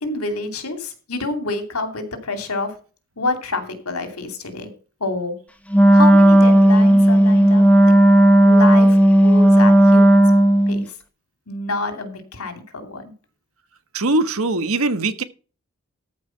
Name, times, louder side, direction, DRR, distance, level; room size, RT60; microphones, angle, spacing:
voice 1, 0.0-2.8 3.2-4.7 5.0-5.4 5.9-7.9 8.4-10.2 10.7-10.9 11.5-13.1, left 2 dB, 80° left, 2.8 m, -28 dB
Wind instrument woodwind instrument, 5.7-10.8, right 1 dB, 5° left, 0.9 m, -12 dB
voice 2, 13.9-15.2, right 2 dB, 75° right, 1.3 m, -21 dB
14.0 x 5.1 x 5.8 m
head